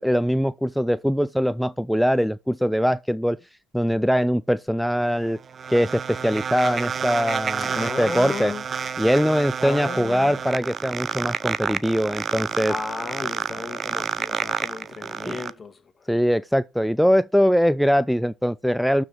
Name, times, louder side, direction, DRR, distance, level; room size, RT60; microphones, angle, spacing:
voice 1, 0.0-3.4 3.7-5.4 5.7-8.5 9.0-12.7 15.3-15.4 16.1-19.0, equal, ahead, 0.4 m, -22 dB
sound 1, 5.0-15.5, right 6 dB, 45° right, 0.6 m, -29 dB
voice 2, 7.6-8.6 9.6-10.4 12.6-16.1, left 4 dB, 35° left, 1.6 m, -34 dB
12.0 x 5.0 x 4.4 m
hypercardioid pair, 55°, 0 cm